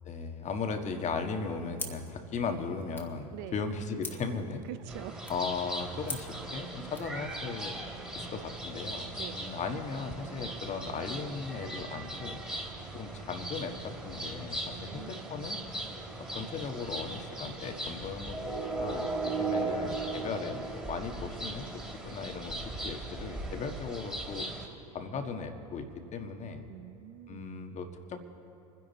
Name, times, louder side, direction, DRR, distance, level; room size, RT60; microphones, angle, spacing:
voice 1, 0.0-4.6 5.3-7.7 8.1-12.4 12.9-15.6 16.2-22.5 22.8-24.5 24.9-26.6 27.3-28.2, left 4 dB, 35° left, 6 dB, 1.5 m, -37 dB
sound 1, 1.7-7.2, left 2 dB, 10° left, 1.9 m, -46 dB
voice 2, 3.3-3.6 4.6-5.2 9.2-9.4 14.7-15.2 19.4-19.7 26.7-27.7, right 15 dB, 60° right, 14 dB, 0.7 m, -45 dB
sound 2, 4.9-24.7, right 2 dB, 5° right, 2.9 m, -38 dB
25.5 x 10.5 x 4.2 m, 2.9 s
hypercardioid pair, 85°, 20 cm